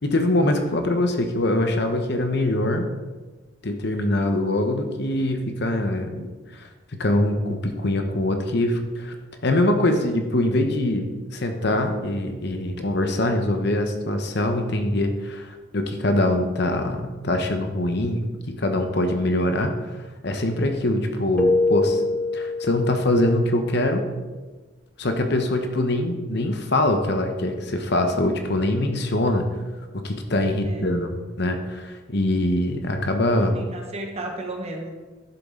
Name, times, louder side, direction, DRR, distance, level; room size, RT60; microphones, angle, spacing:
voice 1, 0.0-2.8 3.6-9.1 9.4-11.1 11.3-20.0 20.2-22.0 22.3-24.1 25.0-29.5 29.9-33.6, left 1 dB, 55° left, 6 dB, 1.0 m, -23 dB
Keyboard (musical), 21.4-23.4, left 3 dB, 5° left, 0.6 m, -24 dB
voice 2, 30.6-30.9 33.4-34.9, right 2 dB, 30° right, 2 dB, 1.4 m, -34 dB
11.0 x 7.6 x 3.8 m, 1.3 s
head